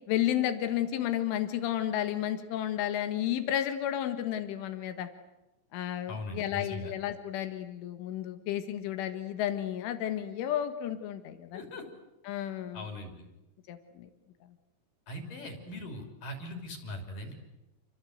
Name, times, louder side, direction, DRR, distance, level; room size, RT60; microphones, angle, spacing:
voice 1, 0.1-5.1 5.7-11.6 12.3-12.9 13.7-14.1, left 11 dB, 90° left, 8 dB, 4.1 m, -32 dB
voice 2, 6.1-6.9 11.5-11.8 12.7-13.3 15.1-17.4, left 1 dB, 50° left, 4 dB, 4.8 m, -40 dB
29.5 x 25.0 x 8.1 m, 0.96 s
omnidirectional pair, 5.4 m